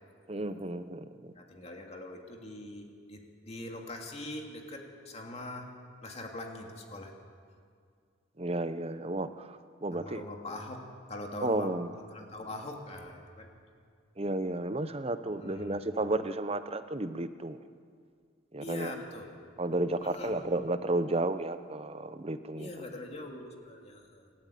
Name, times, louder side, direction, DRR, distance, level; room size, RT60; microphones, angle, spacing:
voice 1, 0.3-1.3 8.4-9.5 9.8-10.2 11.4-11.9 14.2-17.6 18.5-18.9 19.6-22.7, right 2 dB, 30° right, 11 dB, 0.9 m, -32 dB
voice 2, 1.4-5.7 6.0-7.1 9.9-10.8 11.1-11.8 12.1-13.5 15.3-15.8 18.6-19.3 20.0-20.3 22.5-24.3, left 2 dB, 35° left, 2 dB, 2.6 m, -42 dB
28.0 x 13.0 x 9.3 m, 2.1 s
head